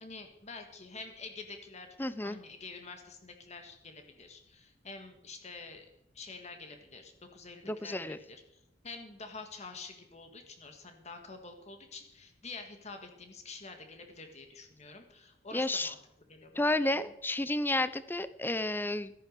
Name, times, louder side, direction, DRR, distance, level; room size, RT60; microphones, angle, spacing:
voice 1, 0.0-2.0 2.2-5.9 6.1-16.0 16.3-17.0, left 3 dB, 35° left, 5 dB, 1.8 m, -47 dB
voice 2, 2.0-2.4 7.6-8.2 15.5-15.9 16.6-19.1, left 2 dB, 10° left, 15 dB, 0.6 m, -31 dB
14.0 x 10.5 x 6.7 m, 0.81 s
head